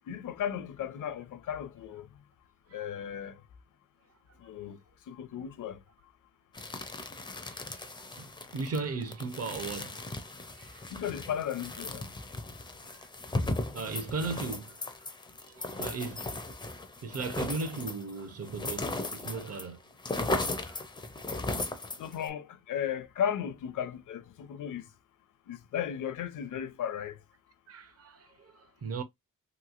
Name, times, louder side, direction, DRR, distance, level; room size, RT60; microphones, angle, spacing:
voice 1, 0.1-2.1 2.7-3.4 4.5-4.8 5.1-5.8 10.9-12.0 22.0-24.8 25.5-27.1, left 9 dB, 65° left, 0.6 m, -35 dB
sound 1, 6.5-19.7 19.9-22.3, left 2 dB, 15° left, 0.4 m, -37 dB
voice 2, 7.4-10.0 10.5-10.9 12.8-13.4 13.7-14.8 15.5-16.6 17.0-19.8 20.5-20.8 27.7-29.0, right 4 dB, 45° right, 0.6 m, -38 dB
3.1 x 3.0 x 2.4 m
wide cardioid pair, 155°, 33 cm